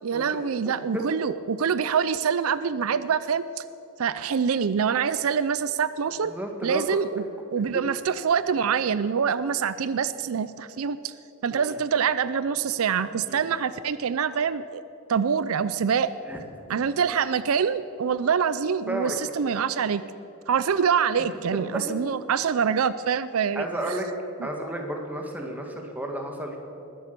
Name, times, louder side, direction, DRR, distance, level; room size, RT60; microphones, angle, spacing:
voice 1, 0.0-3.6 4.0-6.3 6.6-7.2 7.5-11.1 11.4-14.8 15.1-16.1 16.7-20.0 20.5-24.0 24.4-24.5, right 6 dB, 80° right, 15 dB, 0.5 m, -25 dB
voice 2, 6.3-7.0 11.5-11.8 13.3-13.4 16.3-16.4 18.9-19.2 21.7-21.8 23.6-24.1 24.4-26.6, right 1 dB, 10° right, 2 dB, 1.9 m, -32 dB
20.5 x 10.0 x 6.8 m, 2.9 s
head